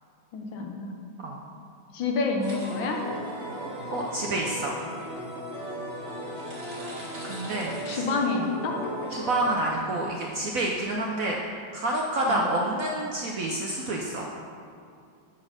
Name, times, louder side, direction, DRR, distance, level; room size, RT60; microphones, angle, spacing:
voice 1, 0.3-1.0 1.9-3.0 7.9-8.8 12.3-12.4, left 3 dB, 80° left, 1 dB, 1.7 m, -28 dB
sound 1, 2.4-9.8, equal, 35° right, 1.9 m, -36 dB
voice 2, 3.9-4.8 7.2-8.0 9.1-11.4 11.7-14.3, right 1 dB, 65° right, -1 dB, 0.8 m, -28 dB
8.6 x 4.2 x 6.4 m, 2.4 s
omnidirectional pair, 2.1 m